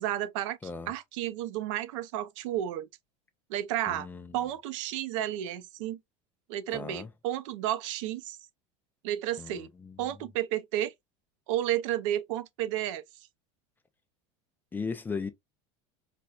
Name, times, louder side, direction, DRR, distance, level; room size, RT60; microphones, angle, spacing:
voice 1, 0.0-2.9 3.5-4.1 4.3-6.0 6.5-8.4 9.0-9.7 10.0-10.9 11.5-13.0, right 12 dB, 80° right, 0.5 m, -32 dB
voice 2, 3.9-4.4 6.7-7.1 9.4-10.0 14.7-15.3, left 5 dB, 10° left, 0.3 m, -37 dB
4.1 x 2.1 x 2.2 m
supercardioid pair, 145°, 16 cm